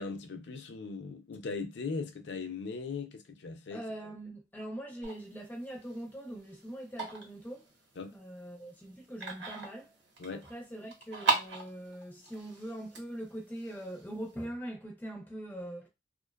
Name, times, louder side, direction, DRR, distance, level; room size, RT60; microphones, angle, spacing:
voice 1, 0.0-3.8 8.0-8.1 10.2-10.4, left 4 dB, 70° left, 0.4 m, -39 dB
voice 2, 3.7-7.7 8.1-10.0 10.3-15.9, right 1 dB, 10° left, 0.4 m, -42 dB
sound 1, 5.0-14.4, right 3 dB, 75° right, 0.8 m, -39 dB
2.5 x 2.2 x 2.2 m
head